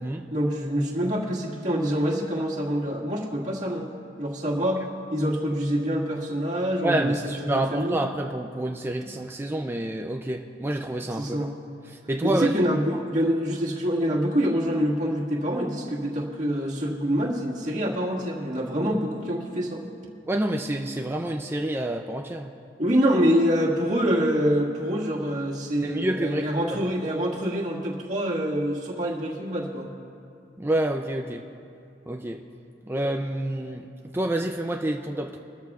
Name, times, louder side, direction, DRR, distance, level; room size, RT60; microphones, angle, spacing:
voice 1, 0.3-3.9 4.2-4.8 5.1-7.2 7.4-8.0 11.2-11.6 12.2-19.8 22.8-29.9, equal, 45° right, -4 dB, 1.8 m, -25 dB
voice 2, 6.8-11.5 11.9-12.6 20.3-22.5 25.8-26.8 30.6-31.4 32.1-32.4 32.8-35.4, right 1 dB, 15° right, 2 dB, 0.4 m, -28 dB
22.0 x 13.5 x 2.4 m, 2.5 s
head